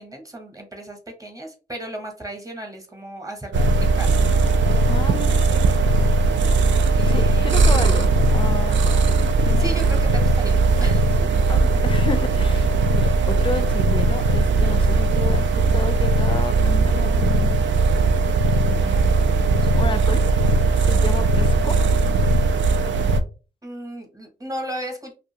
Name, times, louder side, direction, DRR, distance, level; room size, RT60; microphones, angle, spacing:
voice 1, 0.0-4.3 7.0-7.8 9.6-11.0 23.6-25.1, right 1 dB, 20° right, 3 dB, 0.9 m, -35 dB
sound 1, 3.5-23.2, right 3 dB, 85° right, 0.4 m, -18 dB
voice 2, 4.9-5.4 7.1-9.8 11.5-17.7 18.7-21.8, left 3 dB, 30° left, 12 dB, 0.4 m, -32 dB
2.5 x 2.4 x 2.8 m, 0.34 s
cardioid pair, 85°, 19 cm